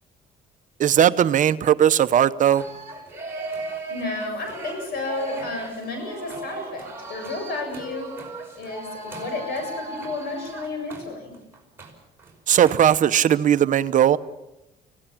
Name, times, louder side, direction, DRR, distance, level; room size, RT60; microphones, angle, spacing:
voice 1, 0.8-2.6 12.5-14.2, right 10 dB, 50° right, 13 dB, 0.8 m, -18 dB
sound 1, 2.5-11.9 12.2-12.3 12.7-12.8, right 2 dB, 15° right, 5.5 m, -36 dB
voice 2, 3.9-8.2 8.6-11.3, left 3 dB, 65° left, 5 dB, 7.3 m, -32 dB
25.5 x 17.0 x 7.3 m, 0.97 s
cardioid pair, 110°, 17 cm